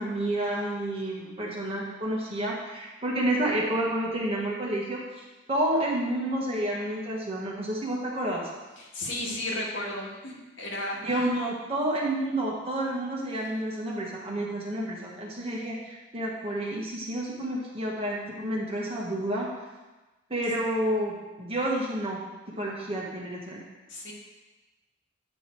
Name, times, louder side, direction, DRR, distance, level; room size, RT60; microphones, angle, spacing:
voice 1, 0.0-8.4 11.0-19.5 20.3-22.2 22.5-23.6, right 1 dB, 30° right, -4 dB, 1.5 m, -30 dB
voice 2, 8.8-11.0 23.9-24.1, left 1 dB, 75° left, -3 dB, 1.9 m, -34 dB
9.0 x 5.3 x 4.6 m, 1.1 s
head